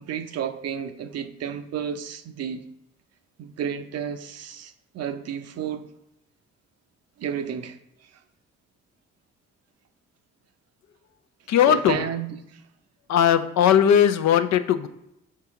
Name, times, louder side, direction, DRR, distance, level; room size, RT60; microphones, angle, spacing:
voice 1, 0.0-2.6 3.4-5.9 7.2-7.8 11.7-12.6, right 8 dB, 55° right, 0.6 m, -31 dB
voice 2, 11.5-12.0 13.1-14.9, left 9 dB, 60° left, 0.6 m, -18 dB
5.8 x 4.6 x 3.6 m
hypercardioid pair, 55°, 31 cm